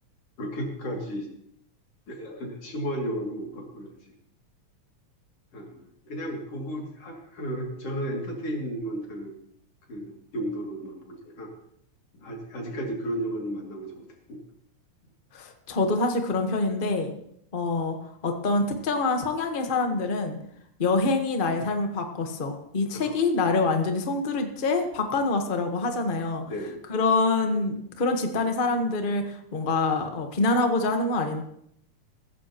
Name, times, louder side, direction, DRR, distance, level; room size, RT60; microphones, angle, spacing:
voice 1, 0.4-1.3 2.1-4.1 5.5-9.3 9.9-11.5 12.2-14.4 22.9-23.2 26.5-26.8, equal, 55° left, 0 dB, 3.6 m, -34 dB
voice 2, 15.3-17.1 17.5-18.0 18.2-20.4 20.8-26.4 26.9-31.4, left 3 dB, 80° left, 4 dB, 0.4 m, -25 dB
16.0 x 14.5 x 3.0 m, 0.71 s
omnidirectional pair, 3.3 m